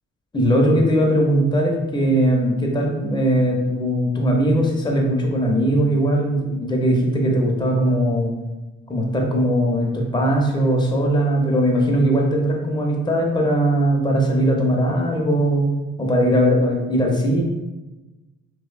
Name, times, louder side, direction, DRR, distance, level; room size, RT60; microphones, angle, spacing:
voice 1, 0.3-8.3 8.9-15.7 16.0-17.4, equal, 15° left, 0 dB, 0.5 m, -19 dB
2.6 x 2.0 x 2.3 m, 1.1 s
cardioid pair, 90°, 30 cm